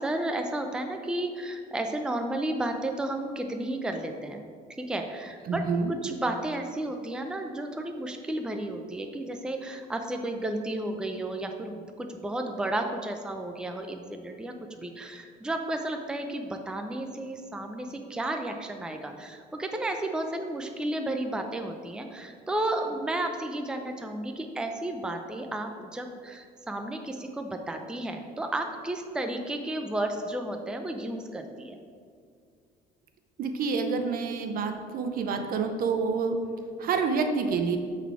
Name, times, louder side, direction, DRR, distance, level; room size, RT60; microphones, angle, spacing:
voice 1, 0.0-4.4 4.8-5.6 6.0-31.8, right 1 dB, 5° right, 5 dB, 0.5 m, -32 dB
voice 2, 5.5-5.9 33.4-36.4 36.8-37.8, right 5 dB, 60° right, 6 dB, 0.7 m, -28 dB
7.0 x 4.1 x 4.7 m, 2.1 s
cardioid pair, 110°, 17 cm